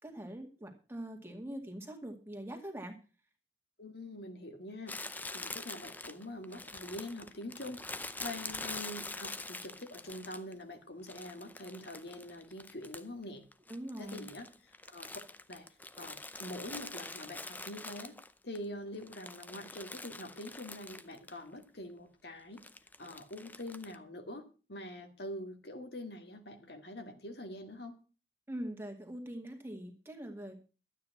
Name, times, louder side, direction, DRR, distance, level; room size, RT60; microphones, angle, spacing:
voice 1, 0.0-3.0 13.7-14.3 28.5-30.6, right 1 dB, 15° right, 4 dB, 2.2 m, -43 dB
voice 2, 3.8-5.0 5.3-7.8 8.2-13.4 14.0-15.2 15.5-15.7 16.0-18.1 18.4-22.6 23.0-27.9, left 1 dB, 65° left, 5 dB, 2.0 m, -45 dB
Crumpling crinkling, 4.9-10.6 11.1-13.2 13.5-18.6 18.9-21.4 21.6-21.7 22.6-24.0, left 3 dB, 10° left, 0.6 m, -45 dB
12.5 x 9.0 x 5.9 m, 0.35 s
head